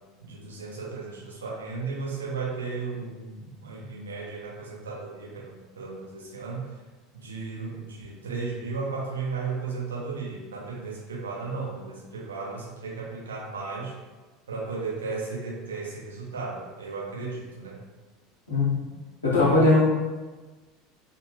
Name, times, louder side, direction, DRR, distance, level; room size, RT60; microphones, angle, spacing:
voice 1, 0.2-6.8 7.1-13.9 14.5-17.8 19.4-19.7, right 4 dB, 75° right, -5 dB, 0.7 m, -35 dB
voice 2, 18.5-18.9 19.2-19.8, left 2 dB, 80° left, -6 dB, 0.7 m, -20 dB
2.5 x 2.0 x 3.1 m, 1.2 s
figure-of-eight pair, 75°, 0 cm